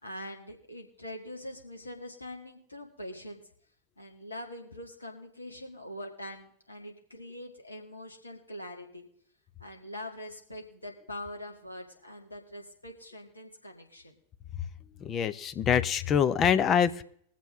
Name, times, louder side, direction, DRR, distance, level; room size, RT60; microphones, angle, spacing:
voice 1, 0.0-3.4 4.0-9.0 9.6-14.1, left 1 dB, 80° left, 1 dB, 2.1 m, -43 dB
voice 2, 15.0-17.0, left 8 dB, 30° left, 11 dB, 0.7 m, -25 dB
22.0 x 7.4 x 3.7 m, 0.66 s
figure-of-eight pair, 90°, 0 cm